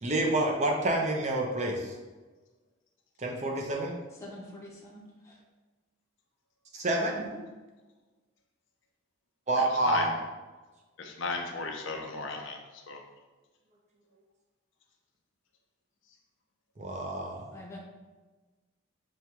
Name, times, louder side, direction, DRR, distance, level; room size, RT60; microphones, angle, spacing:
voice 1, 0.0-1.9 3.2-3.9 6.7-7.2 9.5-10.2 16.8-17.4, right 1 dB, 35° right, 0 dB, 0.5 m, -28 dB
voice 2, 4.2-5.4 7.1-7.4 17.5-17.8, left 1 dB, 15° left, -4 dB, 0.7 m, -45 dB
voice 3, 9.6-10.1 11.0-13.0, left 3 dB, 65° left, 3 dB, 0.5 m, -36 dB
6.2 x 2.2 x 2.9 m, 1.2 s
head